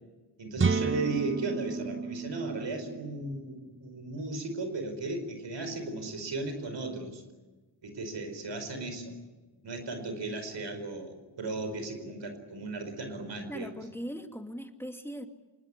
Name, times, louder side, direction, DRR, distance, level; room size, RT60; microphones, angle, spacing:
voice 1, 0.4-7.2 7.8-9.2 9.6-13.8, right 3 dB, 85° right, 7 dB, 4.9 m, -36 dB
sound 1, 0.6-4.3, right 5 dB, 30° right, 0.8 m, -32 dB
voice 2, 13.5-15.3, equal, 5° left, 5 dB, 2.6 m, -39 dB
25.5 x 20.0 x 9.9 m, 1.2 s
cardioid pair, 45°, 42 cm